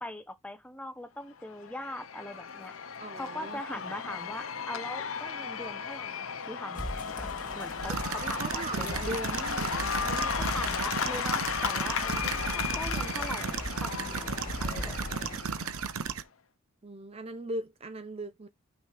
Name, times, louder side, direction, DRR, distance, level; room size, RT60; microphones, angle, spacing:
voice 1, 0.0-2.7 3.2-7.3 7.5-9.0 10.0-15.2, left 1 dB, 5° left, 0.8 m, -41 dB
Cheering / Applause / Crowd, 1.4-16.1, left 6 dB, 75° left, 0.8 m, -35 dB
voice 2, 3.0-3.9 8.2-10.0 16.8-18.5, right 1 dB, 30° right, 0.6 m, -39 dB
sound 1, 6.7-15.4, left 1 dB, 40° left, 2.2 m, -40 dB
sound 2, 7.8-16.2, right 6 dB, 85° right, 0.8 m, -35 dB
6.0 x 5.1 x 3.4 m
head